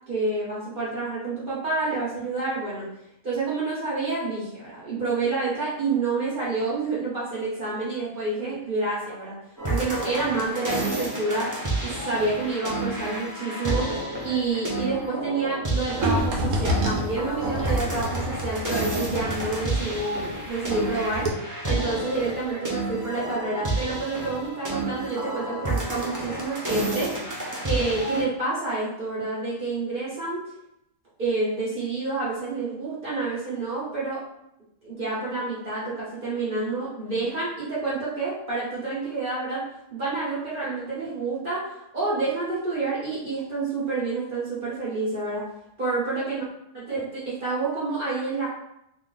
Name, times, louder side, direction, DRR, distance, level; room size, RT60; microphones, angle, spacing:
voice 1, 0.1-2.9 3.2-9.4 9.7-11.5 11.8-14.0 14.2-21.3 21.6-27.4 27.6-30.4 31.2-34.2 34.8-39.6 39.9-45.4 45.8-46.5 46.7-48.5, right 3 dB, 45° right, -7 dB, 1.1 m, -28 dB
sound 1, 9.6-28.2, right 2 dB, 25° right, 0.5 m, -30 dB
sound 2, 16.0-20.9 21.1-21.3, equal, 75° right, 1.1 m, -28 dB
3.1 x 2.6 x 3.8 m, 0.80 s
omnidirectional pair, 1.4 m